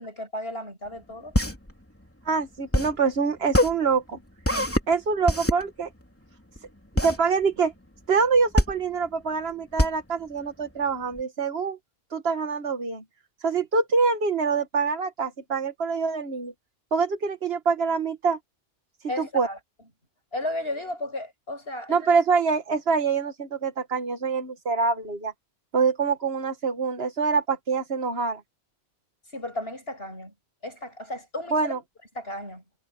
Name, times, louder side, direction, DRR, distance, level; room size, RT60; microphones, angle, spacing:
voice 1, 0.0-1.3 19.1-19.6 20.3-22.1 29.3-30.3 30.6-31.7 32.2-32.6, left 1 dB, 65° left, 8.1 m, -34 dB
sound 1, 0.9-11.2, left 1 dB, 10° left, 3.0 m, -26 dB
voice 2, 2.3-4.2 4.9-5.9 7.0-7.7 8.1-11.8 12.1-13.0 13.4-16.5 16.9-18.4 19.2-19.5 21.9-25.3 25.7-28.4 31.5-31.8, right 5 dB, 70° right, 1.9 m, -25 dB
omnidirectional pair, 1.1 m